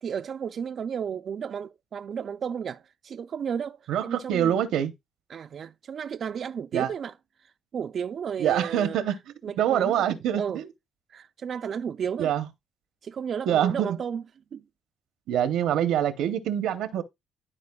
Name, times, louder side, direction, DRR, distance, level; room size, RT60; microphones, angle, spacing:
voice 1, 0.0-4.6 5.3-10.6 11.1-12.3 13.0-14.2 14.5-14.6, right 7 dB, 55° right, 0.3 m, -34 dB
voice 2, 3.9-4.9 6.7-6.9 8.4-9.2 9.6-10.6 12.2-12.4 13.5-14.0 15.3-17.0, right 10 dB, 85° right, 0.7 m, -25 dB
12.5 x 4.2 x 2.3 m
cardioid pair, 90°, 0 cm